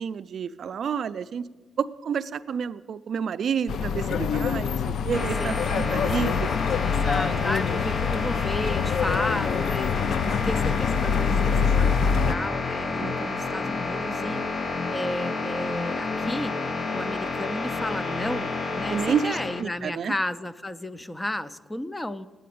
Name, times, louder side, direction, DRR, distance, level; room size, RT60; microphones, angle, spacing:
voice 1, 0.0-1.4 1.8-6.5 7.2-7.6 10.2-10.6 13.0-13.4 18.9-20.1, right 7 dB, 65° right, 13 dB, 0.3 m, -30 dB
sound 1, 3.7-12.3, left 6 dB, 80° left, 0.4 m, -25 dB
sound 2, 5.1-19.6, left 3 dB, 55° left, 0.7 m, -30 dB
voice 2, 6.8-14.4 14.9-16.6 16.9-22.3, left 1 dB, 15° left, 13 dB, 0.4 m, -33 dB
9.2 x 8.5 x 8.4 m, 1.3 s
cardioid pair, 105°, 0 cm